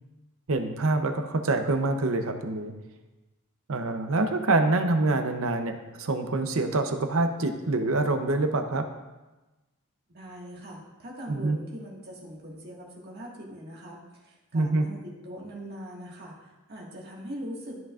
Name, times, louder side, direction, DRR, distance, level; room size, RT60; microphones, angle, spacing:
voice 1, 0.5-2.7 3.7-8.9 11.3-11.6 14.5-14.8, right 2 dB, 70° right, 7 dB, 0.7 m, -26 dB
voice 2, 10.1-17.8, equal, 45° right, -3 dB, 1.7 m, -41 dB
12.5 x 5.9 x 2.4 m, 1.1 s
head